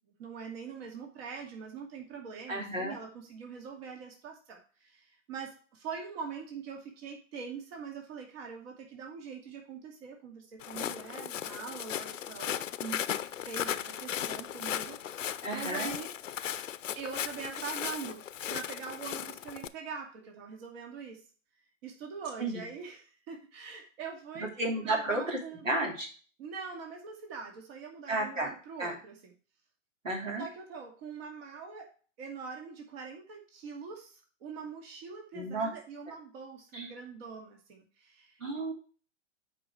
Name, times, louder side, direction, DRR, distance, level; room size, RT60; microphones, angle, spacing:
voice 1, 0.2-13.0 13.3-16.1 17.0-18.2 18.5-21.2 21.8-24.5 24.8-25.7 26.4-29.3 30.4-31.9 32.2-38.4, right 5 dB, 50° right, 2 dB, 2.5 m, -43 dB
voice 2, 2.5-3.0 15.4-15.9 22.4-22.6 24.6-25.4 25.6-26.1 28.1-28.5 28.8-28.9 30.0-30.4 35.3-35.7 36.7-36.9 38.4-38.7, right 2 dB, 90° right, 1 dB, 2.9 m, -32 dB
Walk footsteps, 10.6-19.7, left 10 dB, 80° left, 0.7 m, -36 dB
8.6 x 4.9 x 4.8 m, 0.39 s
hypercardioid pair, 115°, 38 cm